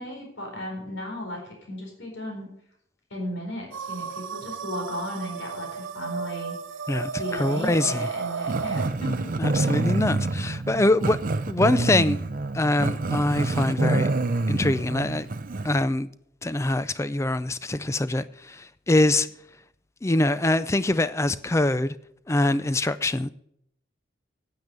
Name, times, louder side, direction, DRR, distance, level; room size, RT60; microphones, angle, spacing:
voice 1, 0.0-2.5 3.1-6.6 7.1-9.3 9.6-9.7, equal, 75° left, 4.3 m, -35 dB
sound 1, 3.7-8.9, right 5 dB, 85° right, 0.7 m, -33 dB
voice 2, 6.9-8.1 9.4-11.2 11.5-12.2 12.5-14.1 14.5-15.3 15.6-16.1 16.4-19.3 20.0-21.9 22.3-23.3, left 2 dB, 15° left, 0.4 m, -24 dB
Growling, 8.5-15.8, right 2 dB, 45° right, 0.5 m, -27 dB
9.6 x 8.9 x 6.7 m
head